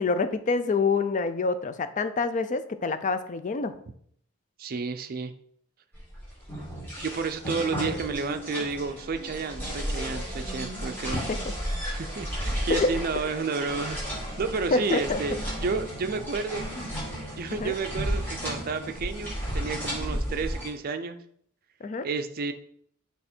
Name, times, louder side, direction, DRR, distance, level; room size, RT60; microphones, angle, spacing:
voice 1, 0.0-3.7 11.1-11.4 12.7-12.9 14.7-15.2 17.6-17.7 21.8-22.1, left 4 dB, 35° left, 11 dB, 0.4 m, -26 dB
voice 2, 4.6-5.3 7.0-11.2 11.8-14.0 14.4-16.7 17.3-21.2 22.0-22.5, right 4 dB, 45° right, 8 dB, 0.5 m, -31 dB
sound 1, 5.9-20.7, equal, 10° left, 2.8 m, -33 dB
6.6 x 3.5 x 4.3 m, 0.65 s
head